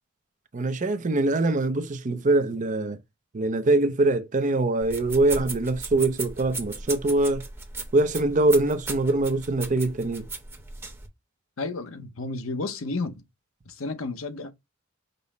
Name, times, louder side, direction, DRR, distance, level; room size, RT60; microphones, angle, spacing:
voice 1, 0.5-3.0 3.3-7.4 7.9-10.3, right 2 dB, 40° right, 0.6 m, -23 dB
sound 1, 4.8-11.1, right 3 dB, 10° right, 0.9 m, -37 dB
voice 2, 11.6-13.2 13.7-14.5, left 3 dB, 85° left, 0.8 m, -32 dB
5.3 x 2.1 x 4.1 m
head